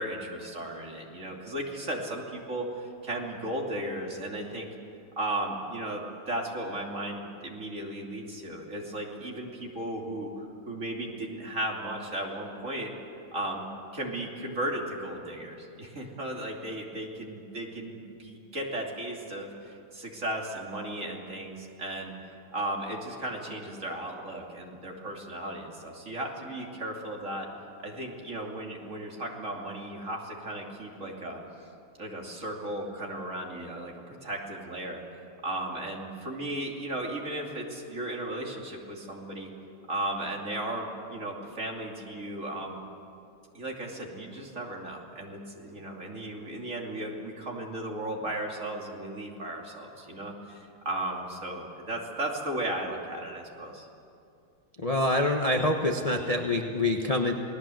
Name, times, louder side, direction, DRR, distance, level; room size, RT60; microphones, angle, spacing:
voice 1, 0.0-4.7 5.2-12.9 13.3-13.6 13.9-22.1 22.5-27.5 27.8-31.4 32.0-35.0 35.4-39.5 39.9-42.8 43.5-53.9, right 1 dB, 35° right, -1 dB, 3.1 m, -35 dB
voice 2, 54.8-57.3, left 2 dB, 25° left, 2 dB, 1.0 m, -26 dB
29.0 x 19.5 x 7.8 m, 2.6 s
omnidirectional pair, 2.3 m